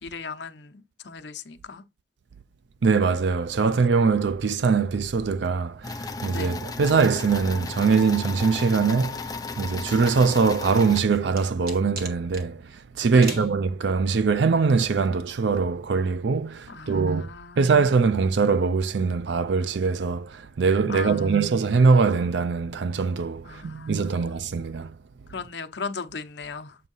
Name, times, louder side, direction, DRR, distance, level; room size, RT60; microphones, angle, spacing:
voice 1, 0.0-1.8 6.3-6.6 13.1-13.5 16.7-17.7 20.9-21.5 23.4-24.2 25.3-26.8, left 4 dB, 75° left, 0.8 m, -37 dB
voice 2, 2.8-25.0, right 5 dB, 75° right, 0.5 m, -22 dB
sound 1, 5.8-11.0, left 3 dB, 20° left, 0.6 m, -34 dB
sound 2, 10.5-12.5 13.2-13.5, right 3 dB, 55° right, 1.8 m, -38 dB
7.7 x 2.7 x 5.4 m
head